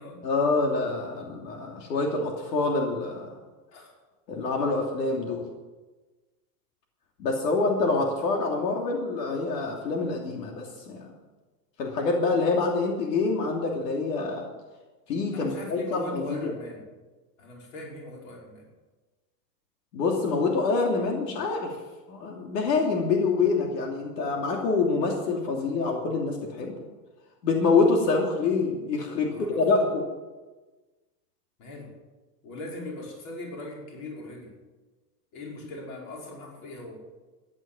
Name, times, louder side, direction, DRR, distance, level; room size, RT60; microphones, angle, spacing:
voice 1, 0.2-3.3 4.3-5.5 7.2-11.1 11.8-14.5 15.1-16.5 19.9-21.8 22.1-26.8 27.4-30.0, left 3 dB, 80° left, 1 dB, 3.0 m, -26 dB
voice 2, 15.3-16.8 17.4-18.6 29.3-29.6 31.6-31.9 32.4-34.5 35.3-37.0, left 2 dB, 40° left, -2 dB, 5.5 m, -40 dB
14.5 x 11.0 x 7.2 m, 1.2 s
supercardioid pair, 160°, 49 cm